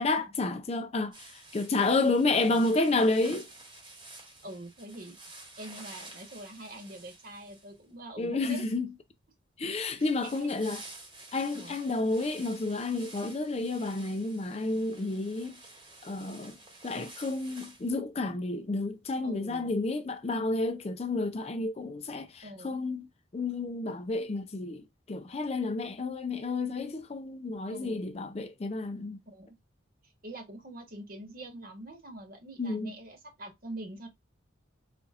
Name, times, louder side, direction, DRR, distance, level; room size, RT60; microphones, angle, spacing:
voice 1, 0.0-3.5 8.2-8.9 9.6-10.8 11.3-15.5 16.0-16.6 16.8-23.1 23.3-29.2 32.6-32.9, left 3 dB, 30° left, 0.4 m, -30 dB
sound 1, 1.1-7.9 9.9-17.9, right 2 dB, 25° right, 1.2 m, -50 dB
voice 2, 4.4-5.2 5.6-8.6 10.0-10.5 11.5-11.8 19.2-19.8 22.4-22.8 27.7-28.1 29.2-29.5 30.2-34.1, right 1 dB, 45° right, 1.2 m, -44 dB
4.2 x 2.8 x 2.4 m
head